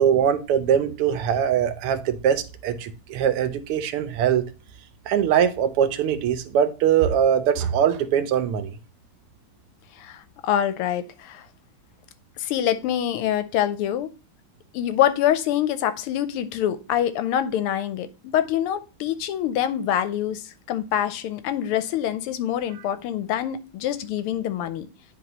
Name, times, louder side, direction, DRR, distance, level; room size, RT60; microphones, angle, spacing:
voice 1, 0.0-4.5 5.1-8.8, right 9 dB, 85° right, 1.7 m, -22 dB
voice 2, 10.0-11.5 12.4-14.1 14.7-24.9, left 10 dB, 90° left, 1.5 m, -25 dB
10.5 x 3.8 x 3.0 m
omnidirectional pair, 2.4 m